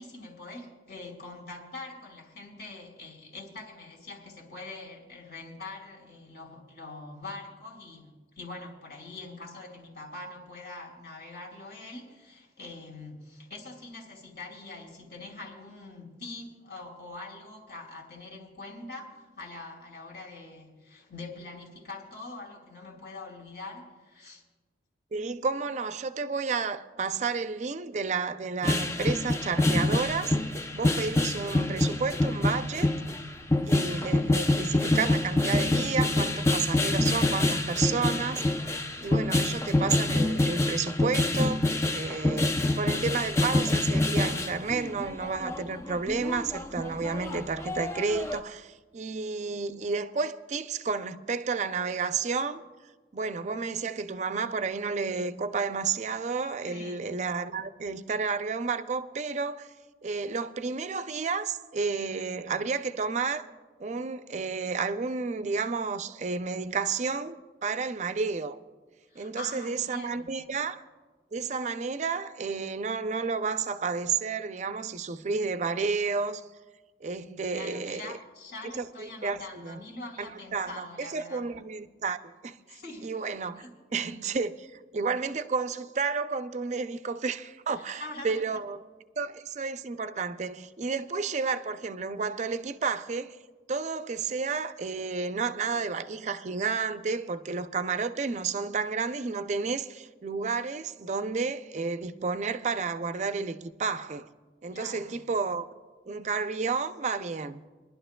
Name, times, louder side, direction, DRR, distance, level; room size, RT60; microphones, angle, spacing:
voice 1, 0.0-24.4 56.7-57.1 69.1-70.3 77.5-81.5 82.6-83.1 83.6-83.7 87.7-88.6 104.7-105.2, left 2 dB, 70° left, 2.6 m, -44 dB
voice 2, 25.1-30.4 30.7-32.9 33.6-38.5 39.0-41.7 41.9-52.6 53.1-59.7 60.0-63.4 63.8-68.6 69.2-70.8 71.3-76.4 77.0-78.2 78.6-79.8 80.2-83.6 83.9-88.8 89.2-93.4 93.7-104.3 104.6-105.7 106.1-107.6, right 4 dB, 40° right, 0.4 m, -31 dB
sound 1, 28.6-48.4, left 2 dB, 15° left, 0.5 m, -26 dB
27.0 x 11.5 x 2.2 m
head